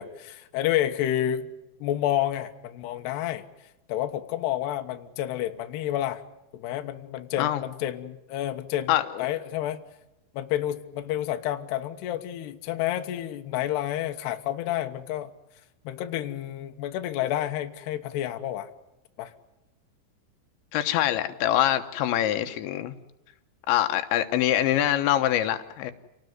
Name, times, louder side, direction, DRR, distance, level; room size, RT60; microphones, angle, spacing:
voice 1, 0.0-1.5 1.8-3.4 3.9-6.2 6.5-9.8 10.3-15.3 15.8-18.7 19.2-19.3, left 12 dB, 75° left, 3.1 m, -29 dB
voice 2, 8.9-9.3 20.7-23.0 23.7-25.9, left 12 dB, 90° left, 3.5 m, -24 dB
28.5 x 18.5 x 9.4 m
omnidirectional pair, 5.1 m